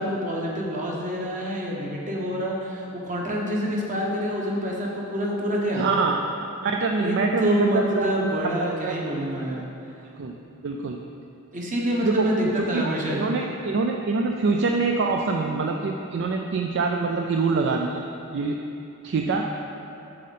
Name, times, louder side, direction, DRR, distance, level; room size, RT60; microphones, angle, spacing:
voice 1, 0.0-5.8 7.0-9.6 11.5-13.3, equal, 35° right, -3 dB, 1.2 m, -27 dB
voice 2, 5.8-6.2 6.6-8.3 8.6-8.9 10.2-10.3 10.6-11.0 12.0-12.3 12.7-18.0 18.3-18.6 19.0-19.5, right 4 dB, 55° right, 2 dB, 0.4 m, -25 dB
7.6 x 6.4 x 4.2 m, 2.8 s
head